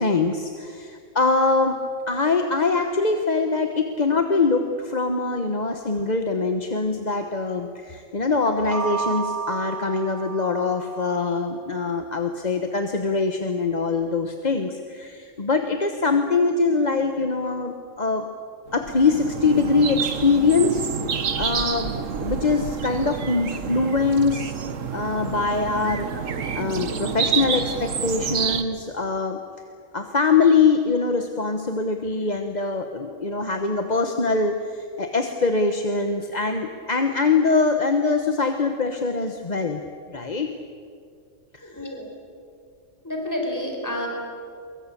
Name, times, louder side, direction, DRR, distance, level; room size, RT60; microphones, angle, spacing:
voice 1, 0.0-1.8 2.1-18.3 18.7-20.9 21.1-21.9 22.2-24.5 24.9-29.4 29.9-39.8 40.1-40.5 41.5-41.7, left 4 dB, 35° left, 5 dB, 1.3 m, -23 dB
sound 1, 8.5-11.2, right 5 dB, 20° right, 0.6 m, -31 dB
sound 2, 18.7-28.6, right 6 dB, 80° right, 1.5 m, -28 dB
voice 2, 41.6-42.1 43.0-44.1, left 1 dB, 15° left, 1 dB, 4.6 m, -30 dB
24.0 x 22.5 x 8.5 m, 2.3 s
omnidirectional pair, 1.3 m